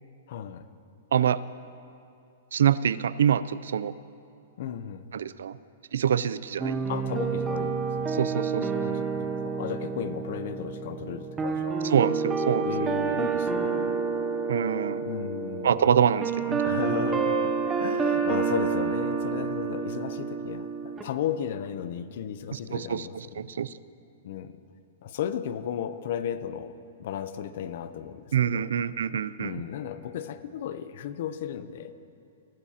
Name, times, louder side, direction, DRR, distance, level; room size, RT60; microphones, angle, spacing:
voice 1, 0.3-0.7 4.6-5.1 6.9-8.1 8.6-12.0 12.6-13.9 15.0-15.9 16.6-17.5 17.8-23.6 24.2-24.6 25.0-28.7 29.4-32.0, left 9 dB, 45° left, 13 dB, 0.6 m, -35 dB
voice 2, 1.1-1.4 2.5-3.9 5.1-5.5 5.9-6.9 8.2-8.6 11.9-12.7 14.5-15.0 15.6-16.6 22.7-23.0 23.4-23.7 28.3-29.6, right 8 dB, 80° right, 17 dB, 0.4 m, -25 dB
sound 1, 6.6-21.0, right 5 dB, 10° right, 0.6 m, -29 dB
21.5 x 14.0 x 2.9 m, 2.5 s
hypercardioid pair, 175°, 0 cm